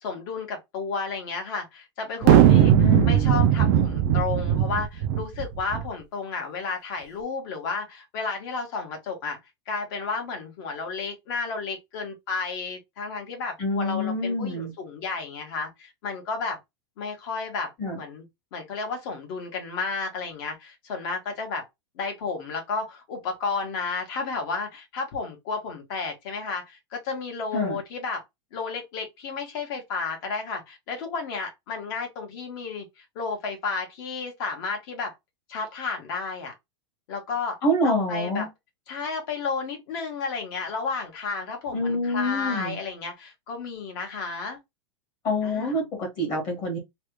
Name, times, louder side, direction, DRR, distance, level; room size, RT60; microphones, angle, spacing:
voice 1, 0.0-2.7 3.0-9.4 9.7-16.6 17.0-17.7 18.0-18.2 18.5-21.6 22.0-28.2 28.5-35.1 35.5-36.5 37.1-37.6 37.8-38.5 38.9-44.6 45.4-45.8, left 4 dB, 45° left, 1.4 m, -32 dB
sound 1, 2.2-5.9, right 10 dB, 35° right, 0.4 m, -19 dB
voice 2, 2.5-3.2 13.6-14.7 17.8-18.0 27.5-27.8 37.6-38.5 41.7-42.8 45.2-46.8, left 1 dB, 30° left, 1.5 m, -26 dB
3.3 x 2.3 x 3.1 m
supercardioid pair, 170°, 16 cm